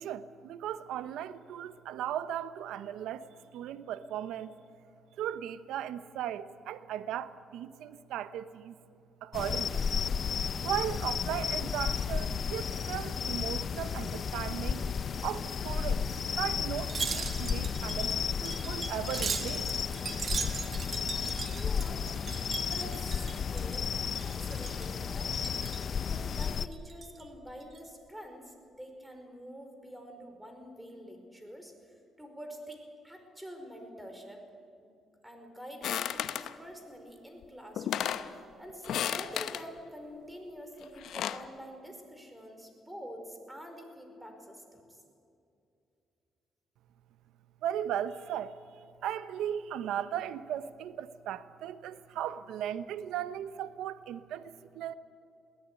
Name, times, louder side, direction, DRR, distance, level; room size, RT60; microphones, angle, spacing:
voice 1, 0.0-4.5 5.2-8.8 9.2-9.8 10.6-14.8 15.2-19.7 47.6-54.9, right 10 dB, 85° right, 13 dB, 0.9 m, -37 dB
sound 1, 9.3-26.7, left 6 dB, 50° left, 0.7 m, -33 dB
Wind chime, 16.8-23.9 24.2-25.0 25.3-25.9 26.3-27.2 27.6-27.8, right 5 dB, 45° right, 2.0 m, -39 dB
voice 2, 21.3-22.1 22.6-23.9 24.2-25.3 26.1-34.4 34.8-34.9 35.2-45.0, equal, 10° right, 4 dB, 5.0 m, -47 dB
sound 2, 35.8-36.5 37.4-37.5 37.8-38.3 38.8-39.6 40.8-41.5, left 10 dB, 75° left, 1.0 m, -33 dB
22.0 x 17.0 x 9.9 m, 2.6 s
cardioid pair, 90°, 0 cm